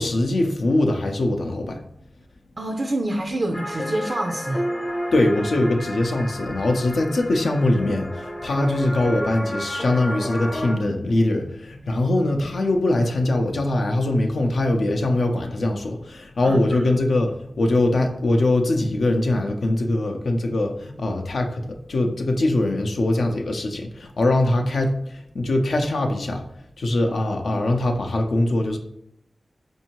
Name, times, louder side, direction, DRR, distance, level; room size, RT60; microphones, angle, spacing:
voice 1, 0.0-1.8 5.1-26.4 26.8-28.8, left 2 dB, 80° left, 3 dB, 0.5 m, -22 dB
voice 2, 2.6-4.7 16.4-16.9, right 1 dB, 50° right, 3 dB, 0.4 m, -27 dB
sound 1, 3.5-10.7, equal, 40° left, 0.7 m, -31 dB
4.4 x 2.7 x 2.9 m, 0.75 s
cardioid pair, 50°, 0 cm